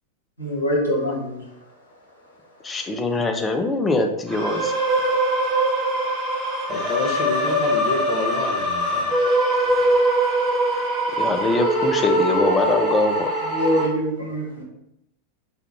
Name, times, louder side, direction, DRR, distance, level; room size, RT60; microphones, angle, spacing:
voice 1, 0.4-1.4 13.4-14.6, equal, 80° left, -4 dB, 1.2 m, -24 dB
voice 2, 2.6-4.7 11.2-13.3, left 2 dB, 15° left, 5 dB, 0.4 m, -22 dB
sound 1, 4.3-13.9, right 1 dB, 10° right, 1.0 m, -22 dB
voice 3, 6.7-9.1, left 2 dB, 35° left, 0 dB, 0.8 m, -29 dB
3.4 x 2.3 x 2.9 m, 0.82 s
figure-of-eight pair, 90°, 0 cm